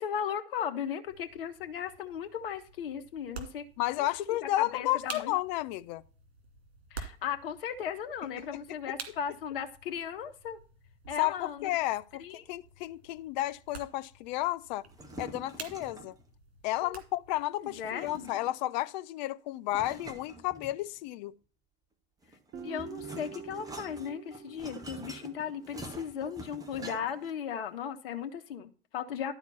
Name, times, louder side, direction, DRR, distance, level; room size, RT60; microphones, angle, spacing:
voice 1, 0.0-3.6 4.0-4.1 4.6-5.3 6.9-10.6 11.1-11.7 12.2-12.4 16.8-16.9 17.6-18.3 22.6-29.3, left 8 dB, 60° left, 1.3 m, -36 dB
sound 1, 1.0-17.4, right 5 dB, 75° right, 2.4 m, -50 dB
voice 2, 3.8-6.0 8.5-8.6 11.2-14.8 15.2-16.2 16.6-21.3, left 16 dB, 45° left, 0.5 m, -32 dB
sound 2, 14.8-16.2 17.7-18.7 19.7-21.1 22.2-27.3, right 1 dB, 10° right, 1.5 m, -46 dB
Guitar, 22.5-25.8, right 7 dB, 35° right, 1.1 m, -46 dB
12.0 x 4.4 x 5.7 m
figure-of-eight pair, 85°, 31 cm